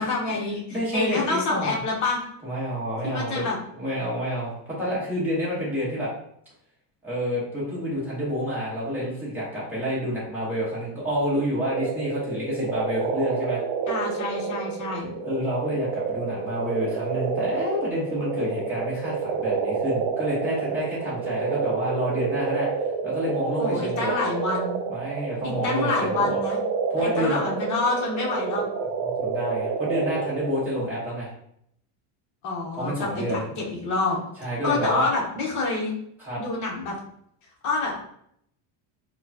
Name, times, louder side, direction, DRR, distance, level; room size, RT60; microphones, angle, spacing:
voice 1, 0.0-2.2 3.0-3.6 13.9-15.1 23.6-24.8 25.4-26.6 27.0-28.6 32.4-34.2 34.6-36.0 36.4-37.0 37.6-38.0, left 3 dB, 35° left, -3 dB, 1.0 m, -27 dB
voice 2, 0.7-1.8 2.4-3.5 3.8-6.1 7.0-13.6 15.2-22.7 23.0-24.1 24.9-26.4 26.9-27.4 29.0-31.3 32.7-33.4 34.4-35.1 36.2-36.4, equal, 5° right, -8 dB, 1.0 m, -28 dB
sound 1, 11.7-30.8, right 5 dB, 70° right, 0.6 m, -29 dB
4.7 x 2.3 x 2.7 m, 0.70 s
cardioid pair, 180°, 50 cm